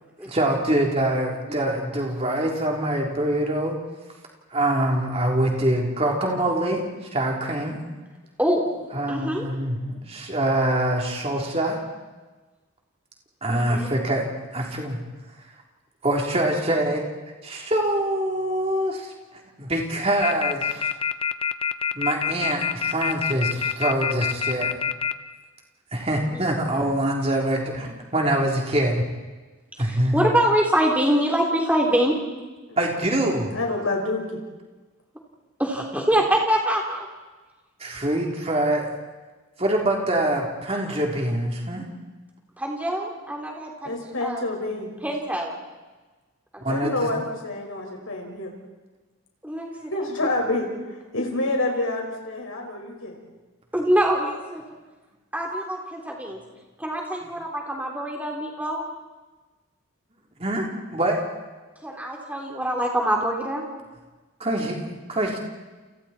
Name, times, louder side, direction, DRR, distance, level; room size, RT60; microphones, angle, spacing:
voice 1, 0.3-3.8 4.5-6.8 7.1-7.8 8.9-11.8 13.4-15.0 16.0-17.0 17.4-19.1 19.6-20.9 21.9-24.7 25.9-29.0 29.8-30.3 32.8-33.5 37.8-38.9 39.6-41.8 46.6-47.1 60.4-61.2 64.4-64.8 65.1-65.4, right 1 dB, 30° right, 0 dB, 3.8 m, -24 dB
voice 2, 8.4-8.8 9.1-9.5 13.5-13.9 26.3-26.4 29.8-32.1 35.6-37.1 42.6-44.4 45.0-45.5 49.4-50.1 53.7-54.6 55.3-56.4 56.8-58.8 61.8-63.6, right 1 dB, 5° right, 0 dB, 3.7 m, -24 dB
sound 1, 20.2-25.1, left 7 dB, 25° left, 0.7 m, -24 dB
voice 3, 32.7-33.2 33.5-34.4 43.8-45.0 46.7-48.5 49.9-53.2, left 2 dB, 75° left, 1 dB, 5.7 m, -28 dB
30.0 x 29.0 x 4.5 m, 1.2 s
head